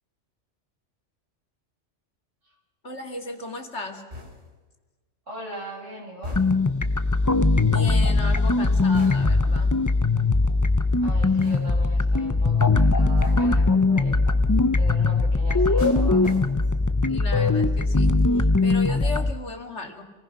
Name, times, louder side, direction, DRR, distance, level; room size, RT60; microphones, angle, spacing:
voice 1, 2.8-4.0 7.3-9.7 17.1-20.0, left 2 dB, 65° left, 4 dB, 2.6 m, -35 dB
sound 1, 4.1-4.7 6.2-6.8 9.0-9.6 11.4-12.0 13.2-13.6 15.8-16.9 17.3-17.6, left 2 dB, 60° right, 4.1 m, -40 dB
voice 2, 5.3-6.5 11.0-14.1 14.8-16.3, right 1 dB, 85° right, -2 dB, 7.0 m, -40 dB
sound 2, 6.3-19.3, left 3 dB, 20° left, 0.6 m, -20 dB
28.0 x 19.0 x 6.0 m, 1.3 s
omnidirectional pair, 1.2 m